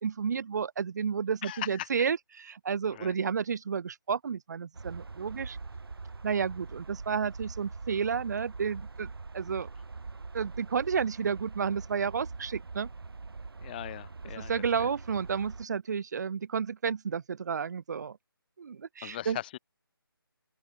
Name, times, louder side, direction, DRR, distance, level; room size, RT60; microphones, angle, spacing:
voice 1, 0.0-5.6 6.2-9.7 10.3-12.9 14.4-18.2 18.6-19.4, right 6 dB, 45° right, 2.5 m, -31 dB
voice 2, 1.4-1.9 2.9-3.1 13.6-14.9 19.0-19.6, left 13 dB, 25° left, 1.5 m, -39 dB
sound 1, 4.7-15.7, right 4 dB, 75° right, 3.6 m, -43 dB
open air
figure-of-eight pair, 160°, 12 cm